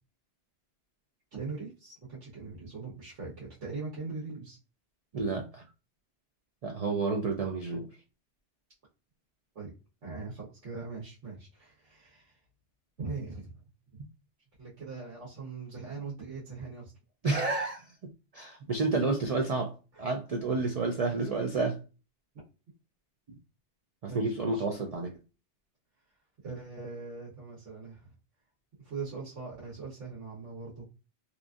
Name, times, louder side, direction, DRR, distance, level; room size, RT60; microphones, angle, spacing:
voice 1, 1.3-4.6 9.5-9.7 10.0-12.4 13.0-13.5 13.9-14.0 14.6-16.9 24.1-24.6 26.4-28.1 28.8-30.9, right 4 dB, 85° right, 1.4 m, -41 dB
voice 2, 5.1-5.6 6.6-7.9 17.2-17.9 18.3-21.8 24.0-25.2, right 3 dB, 70° right, 0.3 m, -30 dB
3.0 x 2.5 x 2.3 m
omnidirectional pair, 1.2 m